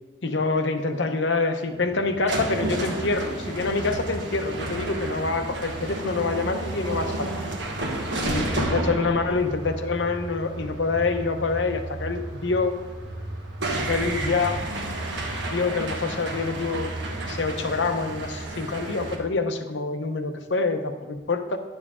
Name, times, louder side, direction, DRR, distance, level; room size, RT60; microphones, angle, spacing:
voice 1, 0.2-7.3 8.2-12.8 13.8-14.6 15.5-16.9 17.2-21.6, left 3 dB, 70° left, 7 dB, 0.8 m, -26 dB
sound 1, 1.8-19.2, right 2 dB, 70° right, 1.2 m, -31 dB
11.0 x 7.3 x 3.7 m, 1.3 s
head